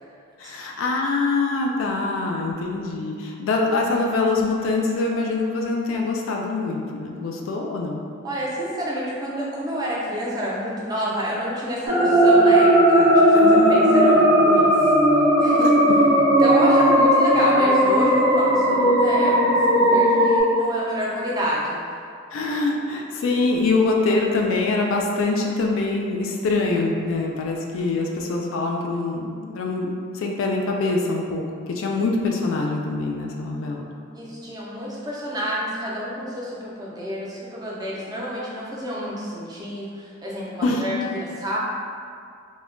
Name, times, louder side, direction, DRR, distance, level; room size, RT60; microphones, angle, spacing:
voice 1, 0.4-8.0 13.3-14.2 15.6-15.7 22.3-33.9 40.6-40.8, left 3 dB, 75° left, 0 dB, 0.3 m, -24 dB
voice 2, 8.2-14.9 15.4-15.8 16.4-21.8 34.1-41.0 41.2-41.6, equal, 20° right, -5 dB, 0.4 m, -29 dB
sound 1, 11.9-20.4, equal, 85° right, 1.0 m, -16 dB
2.1 x 2.1 x 3.6 m, 2.3 s
head